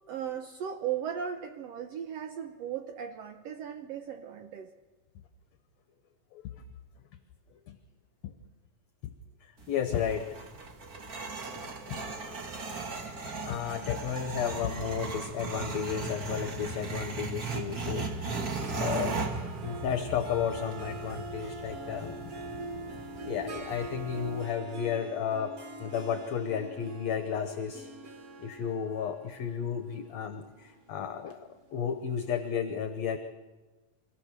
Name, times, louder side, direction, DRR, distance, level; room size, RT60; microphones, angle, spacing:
voice 1, 0.1-4.7, right 9 dB, 75° right, 1.5 m, -37 dB
voice 2, 9.4-10.3 11.5-12.0 13.5-22.4 23.3-27.9 28.4-31.4 31.7-33.2, left 8 dB, 65° left, 1.9 m, -33 dB
sound 1, 9.6-24.4, right 3 dB, 40° right, 1.6 m, -37 dB
Harp, 18.6-32.1, right 2 dB, 55° right, 1.0 m, -44 dB
25.0 x 15.5 x 6.7 m
omnidirectional pair, 3.8 m